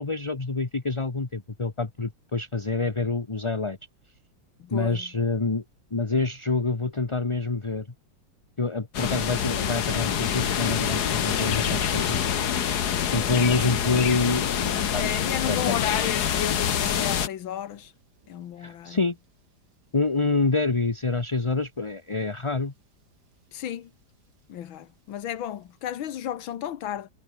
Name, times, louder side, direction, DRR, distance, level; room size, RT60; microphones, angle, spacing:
voice 1, 0.0-3.8 4.7-5.6 5.9-7.9 8.6-12.3 13.1-15.9 18.6-19.1 19.9-22.7, left 3 dB, 20° left, 1.0 m, -27 dB
voice 2, 4.6-5.1 12.9-13.3 15.0-17.9 18.3-19.0 23.5-23.9 24.5-27.1, left 10 dB, 85° left, 2.0 m, -33 dB
sound 1, 8.9-17.3, left 9 dB, 55° left, 1.7 m, -26 dB
Thunder / Rain, 9.5-26.3, right 4 dB, 55° right, 4.1 m, -54 dB
omnidirectional pair, 2.1 m